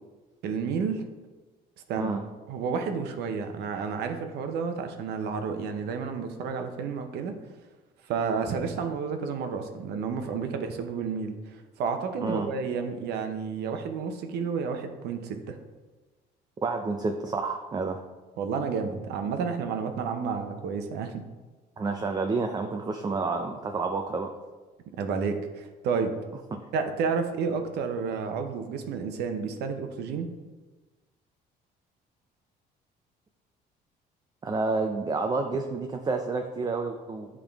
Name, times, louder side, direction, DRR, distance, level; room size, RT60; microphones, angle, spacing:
voice 1, 0.4-1.0 1.9-2.2 2.5-7.3 8.1-15.6 18.4-21.2 25.0-26.1 26.7-30.3, right 5 dB, 75° right, 6 dB, 0.8 m, -31 dB
voice 2, 16.6-18.0 21.8-24.3 26.5-26.6 34.4-37.3, right 3 dB, 25° right, 4 dB, 0.5 m, -29 dB
8.6 x 3.6 x 3.5 m, 1.2 s
cardioid pair, 110°, 17 cm